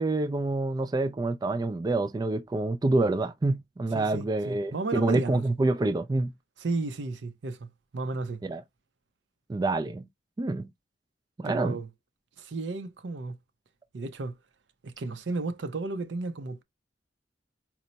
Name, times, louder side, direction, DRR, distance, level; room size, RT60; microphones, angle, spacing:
voice 1, 0.0-6.3 8.4-8.6 9.5-10.1 10.4-10.7 11.4-11.8, right 2 dB, 20° right, 0.3 m, -27 dB
voice 2, 3.9-5.4 6.6-7.7 7.9-8.4 11.4-11.9 12.4-13.4 13.9-14.4 14.8-16.6, right 3 dB, 70° right, 0.6 m, -33 dB
4.3 x 2.0 x 3.9 m
head